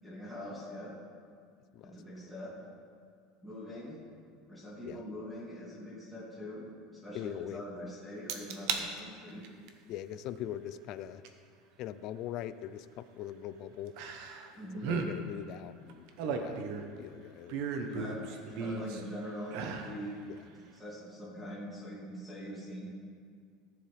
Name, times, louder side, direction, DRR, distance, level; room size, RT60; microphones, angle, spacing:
voice 1, 0.0-0.9 1.8-2.5 3.4-4.0 4.5-6.6 6.9-9.4 14.5-15.0 17.9-20.2 20.7-22.9, equal, ahead, -8 dB, 2.3 m, -43 dB
voice 2, 7.1-7.9 9.9-11.2 11.8-14.0 14.9-17.7 18.8-18.9 20.3-20.4, left 11 dB, 45° left, 14 dB, 0.3 m, -42 dB
sound 1, 8.3-8.8 9.3-9.7 11.2-11.3 14.0-14.5 14.8-15.1 15.9-17.0 17.5-19.0 19.5-20.0 20.4-20.5, right 5 dB, 60° right, 0.8 m, -35 dB
14.0 x 7.2 x 3.3 m, 2.1 s
cardioid pair, 160°, 0 cm